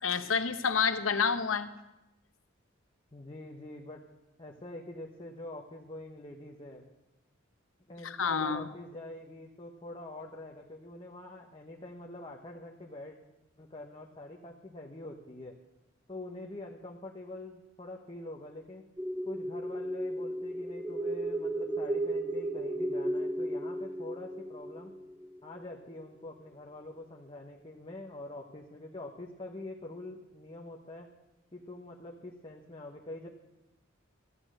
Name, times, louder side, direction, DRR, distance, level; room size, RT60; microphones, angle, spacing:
voice 1, 0.0-1.7 8.0-8.7, left 6 dB, 85° left, 11 dB, 0.9 m, -29 dB
voice 2, 3.1-4.0 4.4-6.8 7.9-13.2 13.6-15.6 16.1-18.9 19.3-24.9 25.4-31.1 31.5-33.3, left 2 dB, 25° left, -1 dB, 1.1 m, -45 dB
sound 1, 19.0-25.5, right 1 dB, 10° right, 0.5 m, -34 dB
14.0 x 9.0 x 7.6 m, 0.97 s
head